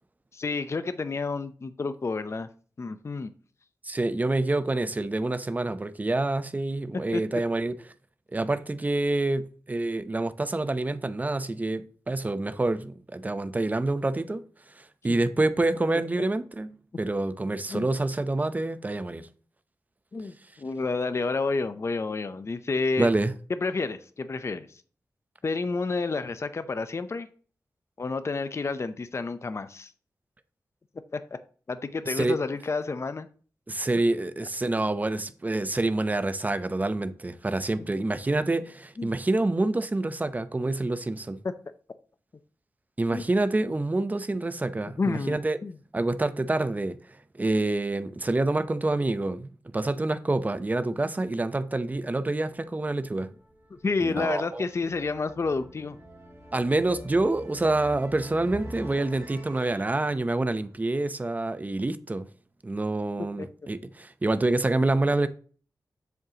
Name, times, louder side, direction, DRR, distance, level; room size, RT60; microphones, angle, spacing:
voice 1, 0.3-2.5 2.8-3.3 7.1-7.2 17.7-17.9 20.1-23.1 23.6-24.8 25.4-27.3 28.0-29.9 31.1-31.2 31.7-33.3 39.0-39.1 43.1-43.2 45.0-45.8 53.8-56.0 63.4-63.5, left 4 dB, 45° left, 0.6 m, -30 dB
voice 2, 3.8-7.7 8.3-14.4 14.8-19.3 23.0-23.3 32.1-32.4 33.7-41.4 43.0-45.6 45.9-47.0 47.4-53.3 54.0-54.6 56.5-62.3 62.6-65.3, right 2 dB, 25° right, 0.7 m, -27 dB
sound 1, 52.4-61.4, right 1 dB, 40° right, 3.7 m, -46 dB
7.9 x 7.4 x 2.9 m
wide cardioid pair, 90°, 7 cm